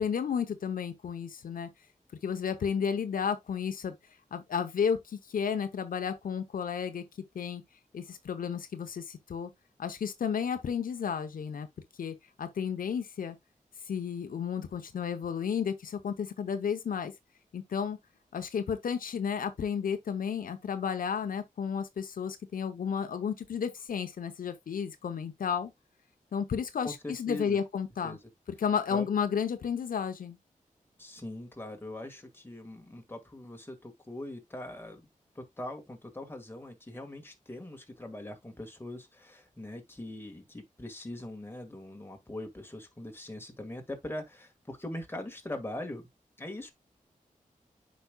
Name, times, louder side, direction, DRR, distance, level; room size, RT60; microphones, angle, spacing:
voice 1, 0.0-1.7 2.2-4.0 4.3-7.0 7.3-7.6 7.9-9.5 9.8-11.7 12.0-13.4 13.9-17.1 17.5-18.0 18.3-25.7 26.3-28.2 28.6-30.4, left 7 dB, 90° left, 0.9 m, -32 dB
voice 2, 26.8-27.6 28.0-28.2 28.9-29.1 31.0-35.1 35.4-46.1 46.4-46.7, left 1 dB, 15° left, 1.8 m, -41 dB
8.3 x 5.3 x 2.3 m
wide cardioid pair, 90°, 14 cm